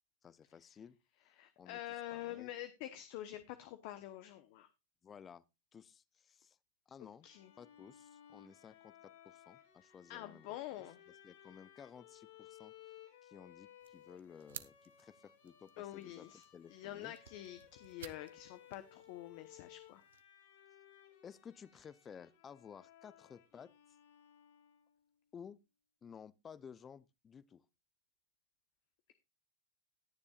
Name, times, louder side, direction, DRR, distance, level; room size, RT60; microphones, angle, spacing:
voice 1, 0.2-1.0 1.6-1.8 2.1-2.5 5.0-5.4 5.7-6.6 6.9-7.3 7.6-10.8 11.2-12.7 13.2-16.3 16.5-17.1 21.2-23.7 25.3-25.6 26.0-27.6, left 7 dB, 20° left, 0.5 m, -55 dB
voice 2, 1.4-4.7 7.2-7.5 10.1-11.0 15.8-16.4 16.7-20.0, left 14 dB, 55° left, 0.9 m, -47 dB
Bowed string instrument, 7.2-25.0, left 11 dB, 70° left, 7.7 m, -61 dB
sound 1, 13.8-20.2, right 10 dB, 85° right, 0.8 m, -57 dB
19.5 x 7.1 x 2.4 m
supercardioid pair, 135°, 0 cm